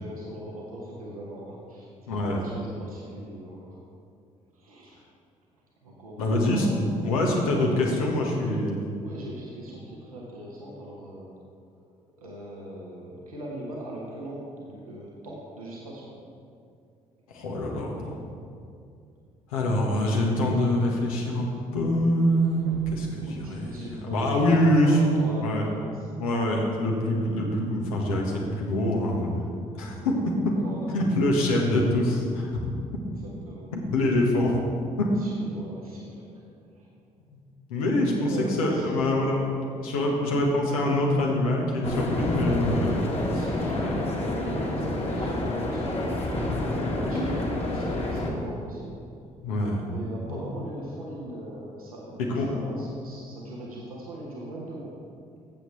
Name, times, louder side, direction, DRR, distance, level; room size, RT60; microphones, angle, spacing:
voice 1, 0.0-3.8 4.5-5.0 5.8-7.2 7.5-8.2 9.0-11.3 11.7-11.9 12.2-16.1 23.1-26.1 30.5-30.9 33.2-33.7 35.2-36.4 36.7-36.9 37.7-38.9 40.3-40.4 43.1-49.0 49.8-55.0, right 1 dB, 90° right, -4 dB, 1.1 m, -40 dB
voice 2, 2.1-2.4 6.2-6.7 7.0-8.8 17.3-18.1 19.5-21.5 21.7-25.0 25.4-25.6 26.2-29.4 29.7-30.1 30.9-32.7 33.7-34.6 35.0-35.1 37.3-37.4 37.7-38.3 38.6-39.4 39.8-43.0 43.7-43.9 49.4-49.8 50.3-50.5 52.3-52.5, left 1 dB, 80° left, -1 dB, 1.4 m, -25 dB
sound 1, 22.5-23.2 24.9-25.0 26.9-27.0 27.9-28.0, right 3 dB, 70° right, 0.9 m, -45 dB
sound 2, 41.8-48.3, left 1 dB, 35° left, 1.9 m, -28 dB
13.5 x 7.8 x 3.2 m, 2.4 s
figure-of-eight pair, 45°, 18 cm